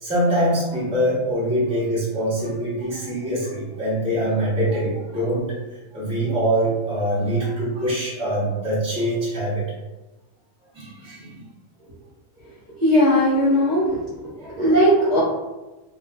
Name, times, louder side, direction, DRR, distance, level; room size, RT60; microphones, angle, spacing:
voice 1, 0.0-5.6 5.9-9.6 10.7-11.4 14.4-15.2, right 1 dB, 5° right, -9 dB, 0.7 m, -24 dB
voice 2, 12.8-13.8 14.6-15.2, equal, 40° right, -10 dB, 0.9 m, -17 dB
2.4 x 2.2 x 3.6 m, 1.1 s
omnidirectional pair, 1.4 m